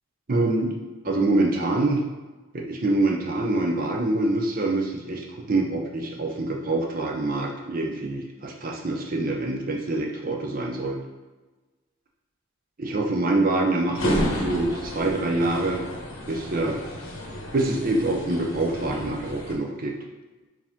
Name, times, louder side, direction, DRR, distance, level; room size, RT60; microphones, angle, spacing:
voice 1, 0.3-0.8 1.0-2.1 2.5-11.0 12.8-15.8 16.3-16.8 17.5-19.9, right 2 dB, 45° right, 1 dB, 0.6 m, -25 dB
sound 1, 13.9-19.5, equal, 90° left, 1.0 m, -32 dB
4.8 x 2.8 x 3.5 m, 1.2 s
head